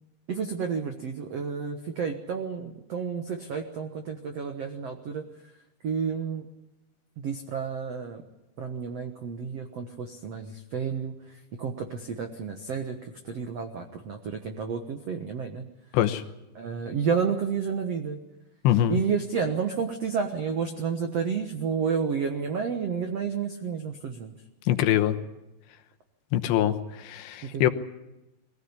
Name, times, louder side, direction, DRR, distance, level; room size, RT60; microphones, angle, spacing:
voice 1, 0.3-5.3 5.8-6.5 7.2-8.2 8.6-15.6 16.5-18.2 18.9-24.3 27.4-27.7, right 6 dB, 75° right, 5 dB, 1.4 m, -31 dB
voice 2, 18.6-19.0 24.7-25.2 26.3-27.7, left 12 dB, 80° left, 9 dB, 3.2 m, -23 dB
22.5 x 16.5 x 9.8 m, 0.96 s
omnidirectional pair, 5.1 m